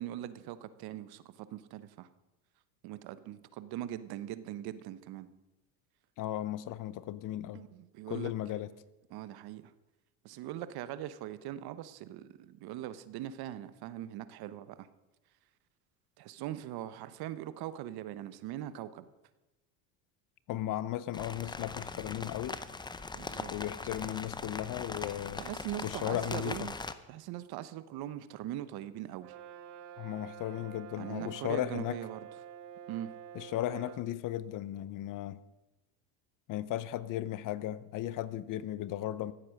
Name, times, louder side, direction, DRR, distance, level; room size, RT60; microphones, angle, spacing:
voice 1, 0.0-2.1 2.8-5.3 7.5-8.3 9.1-9.7 10.2-14.9 16.2-19.1 23.1-23.5 25.4-26.8 27.1-29.3 31.0-32.3 32.9-33.1, right 12 dB, 55° right, 1.0 m, -41 dB
voice 2, 6.2-7.6 8.1-8.7 20.5-22.6 23.5-25.4 25.8-26.7 30.0-32.0 33.3-35.4 36.5-39.3, left 13 dB, 45° left, 0.7 m, -36 dB
sound 1, 21.1-26.9, left 3 dB, 10° left, 0.6 m, -41 dB
Brass instrument, 29.2-34.1, right 9 dB, 80° right, 1.2 m, -48 dB
15.0 x 8.5 x 6.5 m
supercardioid pair, 105°, 45 cm